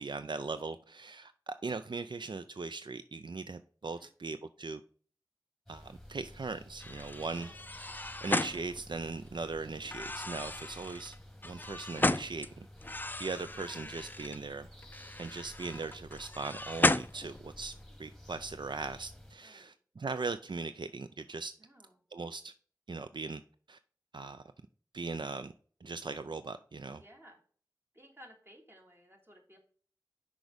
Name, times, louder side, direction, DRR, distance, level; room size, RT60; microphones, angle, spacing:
voice 1, 0.0-4.8 5.7-7.5 8.2-11.2 11.4-12.7 13.2-14.7 15.2-17.7 18.0-21.5 22.1-22.5 22.9-23.4 23.7-23.8 24.1-24.4 24.9-25.5 25.8-27.0, right 4 dB, 80° right, 0.4 m, -39 dB
sound 1, 5.7-19.3, equal, 5° left, 1.4 m, -53 dB
sound 2, 6.8-9.3 9.8-12.5 12.8-14.4 14.8-17.7, left 2 dB, 25° left, 0.3 m, -35 dB
voice 2, 19.4-19.7 21.6-22.0 27.0-27.4 27.9-29.6, equal, 30° right, 2.1 m, -57 dB
6.1 x 4.8 x 5.0 m
wide cardioid pair, 40°, 8 cm